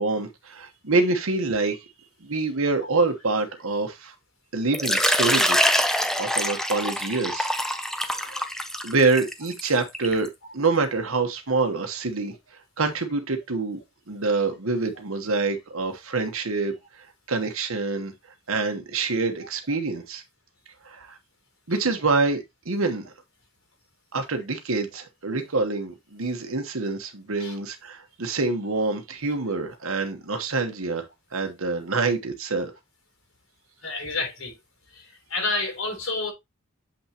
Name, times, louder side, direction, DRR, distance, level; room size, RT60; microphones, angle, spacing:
voice 1, 0.0-1.8 2.2-4.1 4.5-5.6 6.2-7.5 8.1-8.5 8.8-12.3 12.8-13.8 14.1-16.7 17.3-18.1 18.5-20.2 20.8-21.2 21.7-23.1 24.1-31.0 31.3-32.7, right 3 dB, 75° right, 1.1 m, -26 dB
Water / Liquid, 4.7-10.3, equal, ahead, 0.5 m, -24 dB
voice 2, 33.8-34.6 34.9-36.3, left 3 dB, 75° left, 3.4 m, -29 dB
7.3 x 5.7 x 2.9 m
head